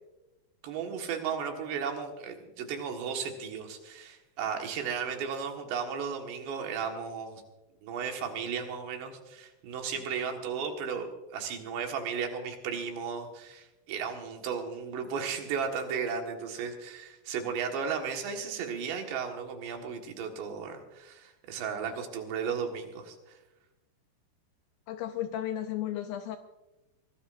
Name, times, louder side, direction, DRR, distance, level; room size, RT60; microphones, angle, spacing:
voice 1, 0.6-7.4 7.8-23.4, right 6 dB, 90° right, 3 dB, 3.9 m, -35 dB
voice 2, 24.9-26.4, left 11 dB, 80° left, 7 dB, 2.1 m, -34 dB
24.0 x 18.0 x 2.6 m, 1.0 s
omnidirectional pair, 4.8 m